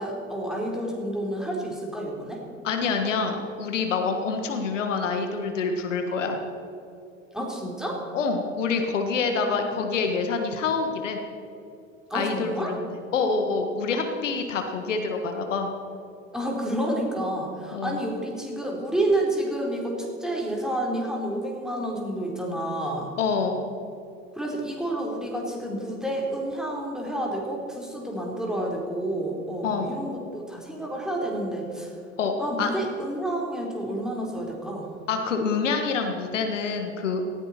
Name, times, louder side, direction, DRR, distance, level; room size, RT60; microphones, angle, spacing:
voice 1, 0.0-2.4 7.3-8.0 9.4-9.5 9.8-9.9 12.1-12.8 16.3-23.1 24.3-31.9 32.4-35.0, right 1 dB, ahead, -2 dB, 3.9 m, -29 dB
voice 2, 2.6-6.4 8.1-11.2 12.1-12.8 13.1-15.7 17.7-18.0 23.2-23.6 29.6-30.0 32.2-32.7 35.1-37.2, left 4 dB, 70° left, 5 dB, 1.7 m, -26 dB
18.5 x 15.5 x 4.4 m, 2.7 s
figure-of-eight pair, 80°, 38 cm